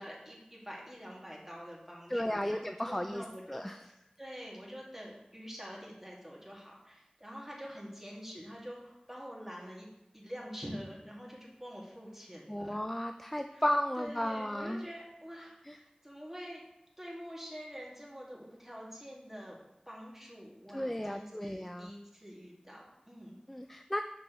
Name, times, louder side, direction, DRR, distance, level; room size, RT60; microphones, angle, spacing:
voice 1, 0.0-9.9 10.1-12.8 13.5-13.7 14.0-16.6 17.0-23.4, equal, 10° right, -3 dB, 1.9 m, -46 dB
voice 2, 2.1-3.2 3.5-3.8 12.5-14.8 15.7-15.8 20.7-21.9 23.5-24.0, left 1 dB, 10° left, 6 dB, 0.3 m, -34 dB
6.2 x 6.1 x 3.0 m, 0.89 s
wide cardioid pair, 40°, 3 cm